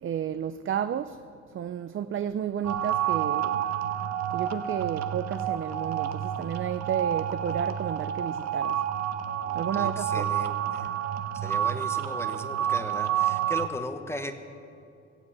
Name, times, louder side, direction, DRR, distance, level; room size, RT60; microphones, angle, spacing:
voice 1, 0.0-1.2 1.5-3.6 4.3-8.8 9.4-10.3, right 9 dB, 45° right, 0.5 m, -32 dB
sound 1, 2.6-13.7, right 10 dB, 60° right, 1.0 m, -29 dB
voice 2, 9.7-10.9 11.3-14.3, left 1 dB, 10° left, 1.1 m, -37 dB
17.0 x 8.0 x 8.3 m
cardioid pair, 90°, 30 cm